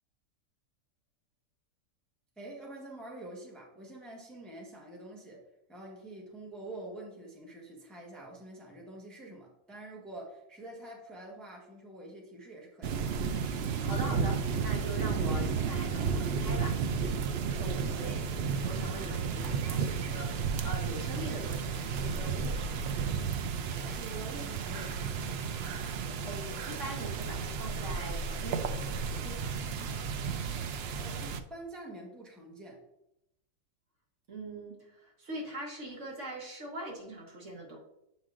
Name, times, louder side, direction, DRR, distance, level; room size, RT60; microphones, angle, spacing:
voice 1, 2.4-5.4 5.7-13.1 17.8-18.2 23.8-25.3 31.0-32.8, right 2 dB, ahead, -2 dB, 1.0 m, -46 dB
sound 1, 12.8-31.4, right 5 dB, 85° right, 0.5 m, -33 dB
voice 2, 13.8-16.8 17.5-22.7 26.3-29.5 34.3-37.8, right 1 dB, 55° right, -1 dB, 1.4 m, -42 dB
7.8 x 5.2 x 2.5 m, 0.86 s
omnidirectional pair, 1.6 m